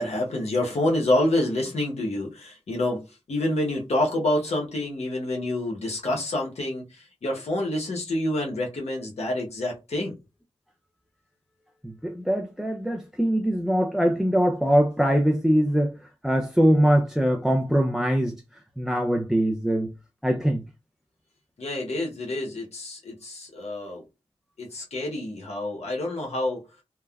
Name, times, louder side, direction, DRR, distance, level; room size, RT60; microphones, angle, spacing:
voice 1, 0.0-10.1 21.6-24.0 24.6-26.6, left 1 dB, 70° left, 0.9 m, -27 dB
voice 2, 11.8-15.9 16.2-18.3 18.8-19.9 20.2-20.6, equal, 5° right, 0.4 m, -22 dB
3.3 x 2.1 x 2.3 m
cardioid pair, 45°, 11 cm